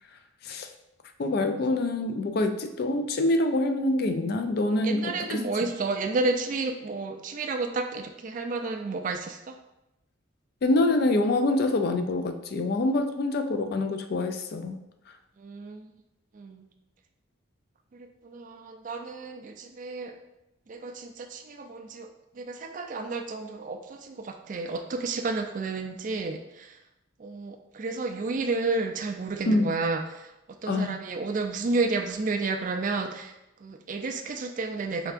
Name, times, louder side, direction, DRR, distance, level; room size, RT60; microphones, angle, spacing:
voice 1, 1.2-5.4 10.6-14.8 29.5-29.7 30.7-30.9, left 2 dB, 50° left, 6 dB, 0.3 m, -25 dB
voice 2, 4.8-9.6 15.4-15.9 16.3-16.7 17.9-20.1 20.7-22.1 22.3-26.8 27.2-33.3 33.6-35.1, right 3 dB, 40° right, 5 dB, 0.3 m, -31 dB
4.5 x 3.4 x 2.4 m, 0.90 s
head